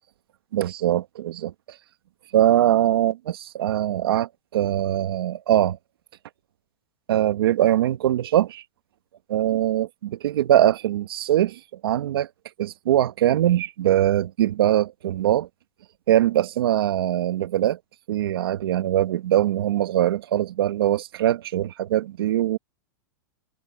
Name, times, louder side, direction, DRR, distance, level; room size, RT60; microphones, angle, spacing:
voice 1, 0.5-1.5 2.3-5.8 7.1-8.6 9.3-12.3 12.6-15.5 16.1-17.8 18.1-22.6, right 12 dB, 75° right, 1.5 m, -22 dB
supercardioid pair, 160°, 12 cm